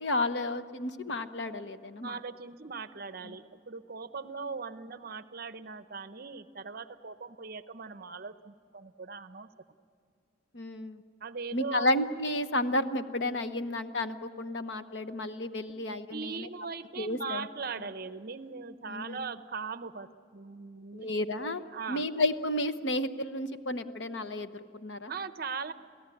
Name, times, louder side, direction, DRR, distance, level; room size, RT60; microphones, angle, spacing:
voice 1, 0.0-2.2 3.2-3.3 10.5-11.0 11.5-16.5 17.0-17.5 18.9-19.2 20.9-25.1, left 1 dB, 60° left, 10 dB, 1.0 m, -32 dB
voice 2, 2.0-9.5 11.2-11.9 16.1-21.1 21.7-22.1 25.1-25.7, right 5 dB, 50° right, 11 dB, 0.8 m, -40 dB
28.5 x 17.0 x 9.9 m, 2.2 s
head